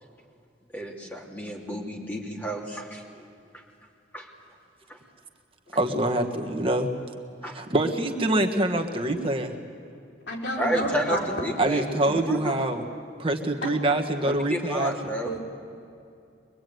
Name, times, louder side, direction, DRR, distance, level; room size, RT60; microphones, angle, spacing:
voice 1, 0.7-3.0 3.5-3.6 4.1-4.3 4.9-5.0 7.4-7.5 10.6-12.5 14.2-15.3, right 1 dB, 10° left, -1 dB, 2.7 m, -31 dB
voice 2, 5.7-6.9 7.4-9.5 11.6-12.8 13.2-15.1, right 1 dB, 30° right, 3 dB, 1.5 m, -25 dB
voice 3, 10.3-11.2 13.6-13.7 15.2-15.4, equal, 70° left, -2 dB, 4.9 m, -30 dB
23.0 x 23.0 x 9.4 m, 2.5 s
head